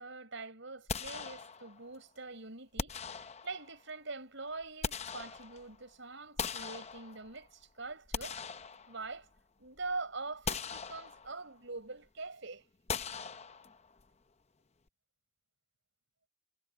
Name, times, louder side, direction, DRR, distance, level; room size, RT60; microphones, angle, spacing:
voice 1, 0.0-8.4 8.9-9.3 9.6-12.7, right 3 dB, 65° right, 5.3 m, -44 dB
sound 1, 0.9-1.9 2.8-3.8 4.5-5.8 6.4-7.5 7.9-9.4 9.8-9.9 10.4-11.5 12.9-14.0, left 5 dB, 30° left, 0.7 m, -40 dB
head